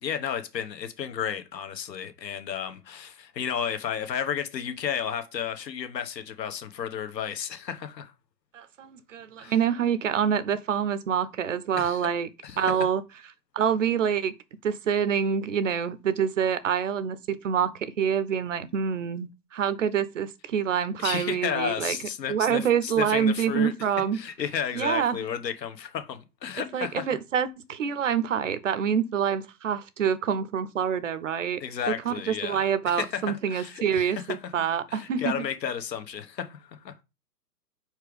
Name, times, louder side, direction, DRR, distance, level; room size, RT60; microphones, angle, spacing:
voice 1, 0.0-8.1 9.4-9.5 11.8-12.1 12.4-12.6 21.0-23.7 24.1-27.1 31.6-34.2 34.6-37.0, left 8 dB, 80° left, 1.3 m, -33 dB
voice 2, 8.5-12.3 12.6-13.0 13.5-14.3 14.6-22.0 22.3-24.2 24.7-25.2 26.6-31.6 32.0-35.3, right 8 dB, 50° right, 0.6 m, -26 dB
4.9 x 4.5 x 5.0 m
hypercardioid pair, 165°, 50 cm